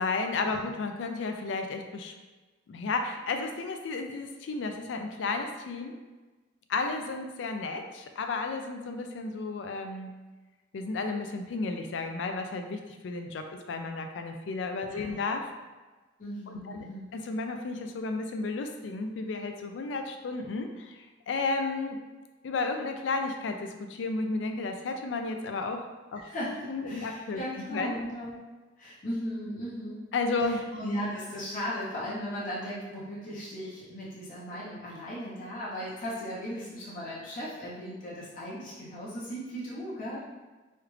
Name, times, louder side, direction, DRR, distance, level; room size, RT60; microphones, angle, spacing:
voice 1, 0.0-2.1 2.7-5.9 6.7-10.1 10.7-15.5 16.5-16.9 17.1-22.0 22.4-25.9 26.1-26.3 26.7-27.4 27.7-28.0 30.1-30.6, left 3 dB, 75° left, 5 dB, 0.4 m, -33 dB
voice 2, 16.2-17.1 26.2-28.3 28.8-30.0 30.4-40.2, equal, 45° left, -7 dB, 0.9 m, -37 dB
3.2 x 2.4 x 3.1 m, 1.2 s
head